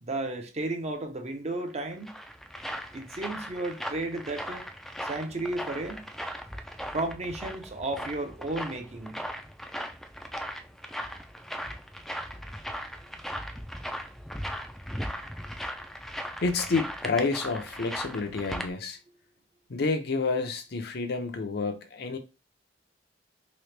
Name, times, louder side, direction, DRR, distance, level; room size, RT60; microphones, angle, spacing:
voice 1, 0.0-2.1 2.9-4.7 5.0-6.0 6.9-9.2, right 2 dB, 40° right, 0.6 m, -33 dB
sound 1, 1.7-18.7, equal, ahead, 0.4 m, -38 dB
voice 2, 16.4-19.0 19.7-22.2, left 4 dB, 60° left, 0.6 m, -29 dB
3.1 x 2.9 x 3.2 m
head